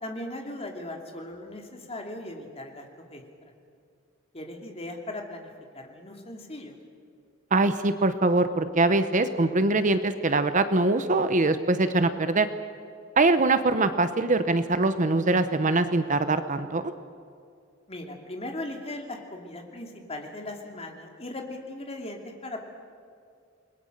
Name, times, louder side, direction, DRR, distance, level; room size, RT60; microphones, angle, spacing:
voice 1, 0.0-3.2 4.3-6.8 17.9-22.6, left 1 dB, 30° left, 3 dB, 2.8 m, -38 dB
voice 2, 7.5-12.5 13.2-16.8, right 2 dB, 40° right, 11 dB, 0.9 m, -23 dB
29.0 x 21.5 x 6.7 m, 2.3 s
head